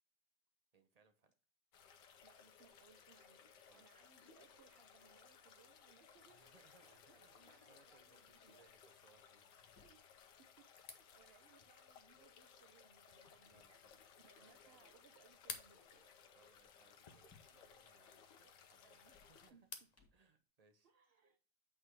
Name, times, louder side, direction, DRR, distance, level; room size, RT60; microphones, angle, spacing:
voice 1, 0.7-1.3 3.6-4.1 6.3-9.7 13.4-14.9 16.3-19.6 20.1-20.9, right 4 dB, 30° right, 0.8 m, -72 dB
sound 1, 1.7-19.5, left 7 dB, 75° left, 1.5 m, -63 dB
voice 2, 2.2-8.6 9.8-10.0 10.4-10.6 10.9-13.8 14.2-16.1 18.4-19.2 19.5-19.7 20.8-21.4, right 6 dB, 70° right, 0.5 m, -69 dB
Drawer open or close, 6.1-7.3 8.9-10.1 11.4-11.5 12.3-12.6 12.9-13.3 13.7-13.9 14.4-14.5 14.7-14.9 15.9-17.9 19.0-20.3, left 4 dB, 10° left, 1.8 m, -73 dB
sound 2, 10.7-20.0, left 4 dB, 35° left, 0.7 m, -58 dB
8.5 x 3.9 x 4.7 m
omnidirectional pair, 1.9 m